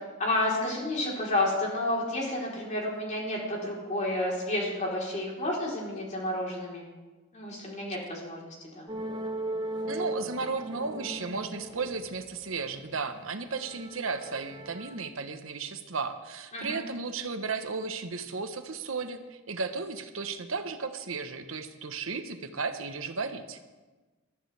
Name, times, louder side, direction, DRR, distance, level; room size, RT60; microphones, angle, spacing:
voice 1, 0.2-6.8 7.3-8.9 16.5-16.8, left 1 dB, 35° left, -3 dB, 3.9 m, -30 dB
sound 1, 8.9-12.9 13.4-15.0, right 1 dB, 20° right, 1.1 m, -38 dB
voice 2, 9.9-23.6, right 4 dB, 85° right, 8 dB, 1.1 m, -34 dB
21.0 x 13.0 x 3.5 m, 1.2 s
head